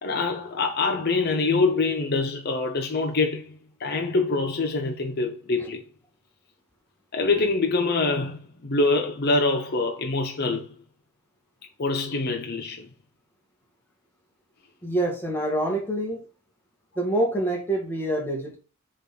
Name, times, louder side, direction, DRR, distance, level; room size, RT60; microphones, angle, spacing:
voice 1, 0.0-5.8 7.1-10.8 11.8-12.9, left 3 dB, 45° left, 0.9 m, -25 dB
voice 2, 14.8-16.2 17.0-18.6, right 1 dB, 10° left, 2.2 m, -26 dB
7.0 x 4.0 x 5.9 m
head